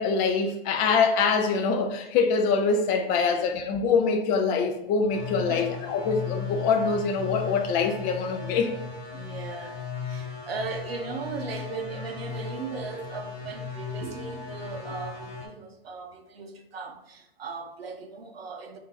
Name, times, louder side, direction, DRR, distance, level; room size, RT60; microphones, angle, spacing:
voice 1, 0.0-8.7, left 5 dB, 25° left, 0.4 m, -24 dB
voice 2, 3.1-3.4 5.5-5.6 9.1-18.8, right 4 dB, 85° right, 0.6 m, -38 dB
sound 1, 5.1-15.5, left 6 dB, 50° left, 1.1 m, -37 dB
3.7 x 2.6 x 3.9 m
hypercardioid pair, 110°, 30 cm